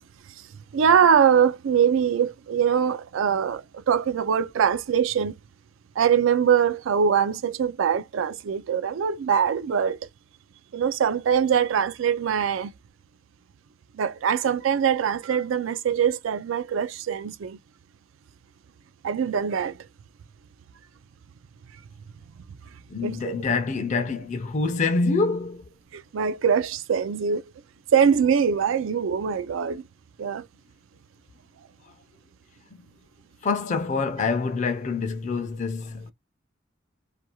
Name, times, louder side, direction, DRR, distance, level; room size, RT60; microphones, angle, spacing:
voice 1, 0.7-5.3 6.0-10.0 10.7-12.7 13.9-17.6 19.0-19.8 23.0-23.3 25.9-27.4 27.9-29.8 30.2-30.5, right 7 dB, 75° right, 0.4 m, -23 dB
voice 2, 22.9-25.7 33.4-36.1, left 4 dB, 35° left, 0.4 m, -26 dB
2.4 x 2.3 x 2.9 m
head